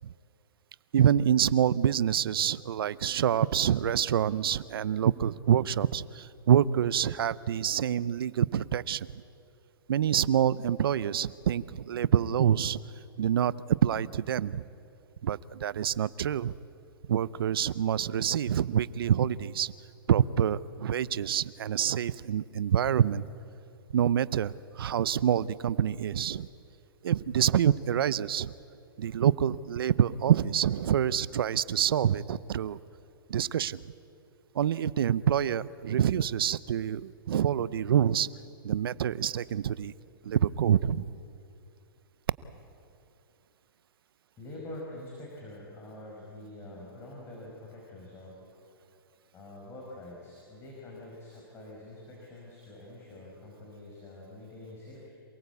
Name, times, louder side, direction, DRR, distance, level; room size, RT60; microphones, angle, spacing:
voice 1, 0.9-9.1 9.9-12.8 13.2-13.5 13.8-14.6 15.2-16.5 17.1-19.7 20.1-23.3 23.9-26.5 27.0-28.5 29.0-32.8 33.3-33.8 34.5-38.3 38.6-39.9 40.2-41.1, right 9 dB, 75° right, 18 dB, 0.8 m, -26 dB
voice 2, 44.4-48.4 49.3-55.1, left 1 dB, 20° left, -3 dB, 5.5 m, -45 dB
27.5 x 18.5 x 8.3 m, 2.6 s
hypercardioid pair, 145°, 12 cm